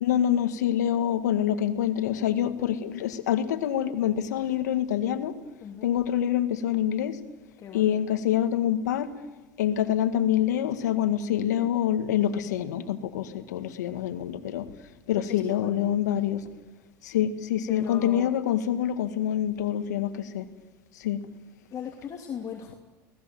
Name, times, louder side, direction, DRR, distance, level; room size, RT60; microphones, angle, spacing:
voice 1, 0.0-5.3 5.8-7.2 7.7-9.1 9.6-14.7 15.1-16.4 17.0-20.4 21.0-21.2, left 10 dB, 90° left, 9 dB, 1.7 m, -26 dB
voice 2, 7.6-7.9 15.2-15.9 17.7-18.4 21.7-22.7, left 7 dB, 40° left, 1 dB, 2.8 m, -38 dB
29.5 x 19.0 x 7.7 m, 1.2 s
supercardioid pair, 95°, 9 cm